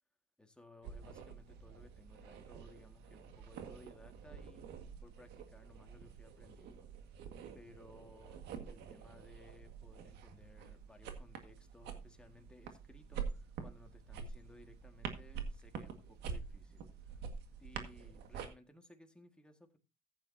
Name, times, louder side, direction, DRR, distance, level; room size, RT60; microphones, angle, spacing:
voice 1, 0.4-6.9 7.2-17.3 17.6-19.8, left 2 dB, 5° left, 1.9 m, -61 dB
sound 1, 0.8-18.5, right 6 dB, 85° right, 1.8 m, -47 dB
15.0 x 8.7 x 2.7 m
cardioid pair, 110°, 17 cm